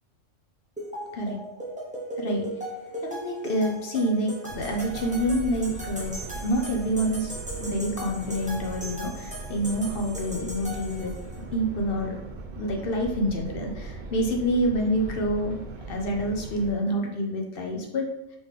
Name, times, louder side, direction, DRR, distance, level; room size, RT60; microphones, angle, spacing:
sound 1, 0.8-11.4, right 1 dB, 10° right, 0.6 m, -38 dB
voice 1, 2.2-2.5 3.0-6.2 6.4-11.2 11.5-12.2 12.6-15.6 15.9-18.4, equal, 55° left, 1 dB, 0.8 m, -27 dB
sound 2, 4.5-16.7, right 2 dB, 55° right, 0.5 m, -39 dB
3.9 x 3.5 x 3.2 m, 0.86 s
omnidirectional pair, 1.3 m